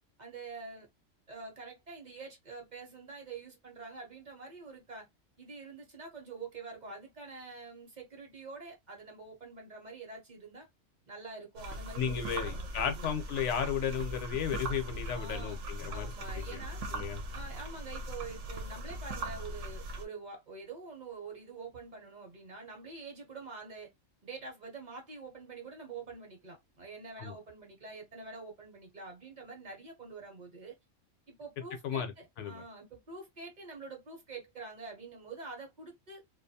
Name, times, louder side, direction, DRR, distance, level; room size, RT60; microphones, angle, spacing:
voice 1, 0.2-0.9 1.3-5.1 5.4-10.7 11.1-13.2 15.1-15.6 15.9-16.8 17.3-23.9 24.2-30.7 31.3-36.2, right 4 dB, 40° right, 0.8 m, -46 dB
sound 1, 11.6-20.1, right 1 dB, 70° right, 0.9 m, -40 dB
voice 2, 12.0-16.6 16.9-17.2 27.2-27.4 31.8-32.1 32.4-32.6, left 8 dB, 70° left, 0.9 m, -34 dB
2.5 x 2.3 x 2.6 m
omnidirectional pair, 1.3 m